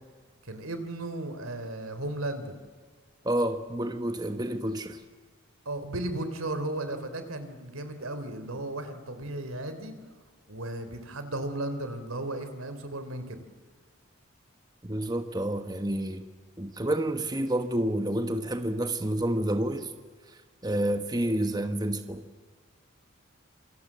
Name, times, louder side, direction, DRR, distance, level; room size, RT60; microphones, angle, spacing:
voice 1, 0.4-2.6 5.7-9.9 10.5-13.4, right 1 dB, 85° right, 9 dB, 3.5 m, -35 dB
voice 2, 3.2-5.0 14.8-16.2 16.6-19.9 20.3-22.3, right 1 dB, 20° right, 8 dB, 1.2 m, -29 dB
27.5 x 25.5 x 7.5 m, 1.5 s
head